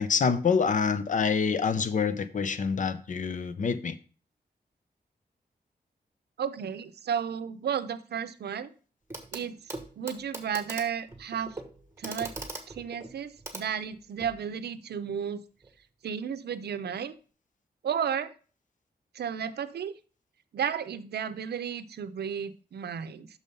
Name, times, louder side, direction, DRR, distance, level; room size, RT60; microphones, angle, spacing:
voice 1, 0.0-3.9, left 5 dB, 50° left, 0.6 m, -26 dB
voice 2, 6.4-8.7 9.3-9.6 10.0-11.6 12.0-12.3 12.7-15.4 16.0-17.1 17.8-18.3 19.1-19.9 20.5-23.3, right 8 dB, 90° right, 0.6 m, -33 dB
Clock, 9.1-9.4 9.7-14.4 15.6-15.7, right 2 dB, 15° right, 1.2 m, -41 dB
6.2 x 5.4 x 5.2 m
wide cardioid pair, 140°, 16 cm